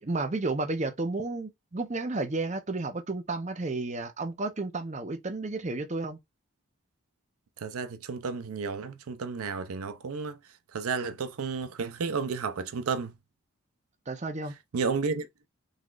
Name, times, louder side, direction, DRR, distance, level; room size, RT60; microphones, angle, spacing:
voice 1, 0.0-6.2 14.1-14.5, right 3 dB, 30° right, 0.6 m, -32 dB
voice 2, 7.6-10.4 10.7-13.1 14.7-15.3, right 5 dB, 85° right, 0.5 m, -32 dB
3.9 x 3.1 x 2.4 m
head